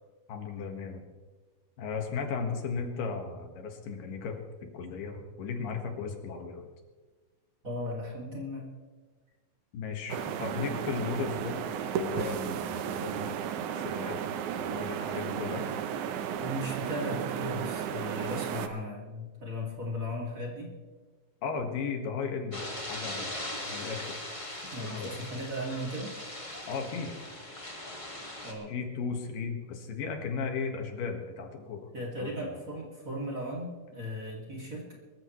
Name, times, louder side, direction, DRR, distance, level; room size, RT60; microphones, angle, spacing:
voice 1, 0.3-1.0 1.8-4.4 4.7-6.7 9.7-11.6 12.0-14.2 14.5-15.7 21.4-24.2 24.8-25.2 26.7-27.1 28.7-31.9 32.2-32.6, left 5 dB, 80° left, 4 dB, 3.4 m, -36 dB
voice 2, 7.6-8.7 16.4-20.7 24.7-26.2 28.4-28.7 31.9-35.0, equal, 25° right, -2 dB, 2.6 m, -36 dB
sound 1, 10.1-18.7, right 8 dB, 75° right, 2.2 m, -34 dB
sound 2, 22.5-28.5, left 1 dB, 15° left, 1.1 m, -40 dB
24.0 x 14.5 x 3.2 m, 1.4 s
omnidirectional pair, 3.8 m